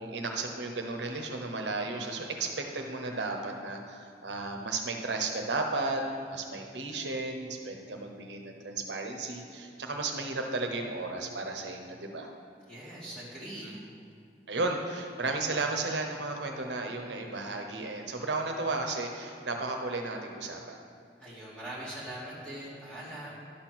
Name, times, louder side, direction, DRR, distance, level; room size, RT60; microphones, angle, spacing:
voice 1, 0.0-6.0 6.3-12.3 13.6-13.9 14.5-20.8, right 3 dB, 85° right, 3 dB, 1.0 m, -34 dB
voice 2, 12.7-13.8 21.2-23.5, right 1 dB, 5° left, -10 dB, 2.5 m, -42 dB
11.0 x 4.4 x 6.1 m, 2.3 s
head